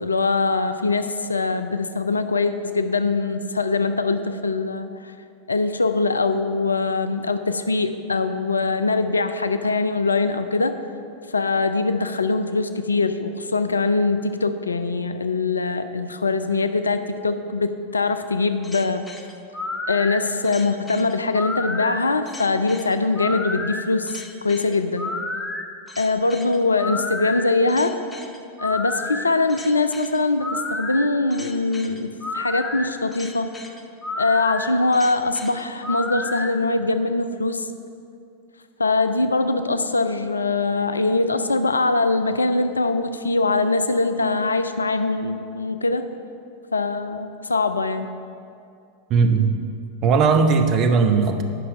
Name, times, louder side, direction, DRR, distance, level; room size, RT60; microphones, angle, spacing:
voice 1, 0.0-5.1 5.5-10.8 11.3-19.0 19.9-25.1 26.0-28.0 28.6-33.5 34.2-37.7 38.8-46.1 46.7-48.1, left 3 dB, 75° left, 9 dB, 0.4 m, -22 dB
sound 1, 18.6-36.5, left 2 dB, 10° left, 0.6 m, -31 dB
voice 2, 49.1-49.6 50.0-51.4, right 5 dB, 35° right, 6 dB, 0.7 m, -18 dB
9.2 x 5.6 x 5.2 m, 2.5 s
figure-of-eight pair, 90°, 0 cm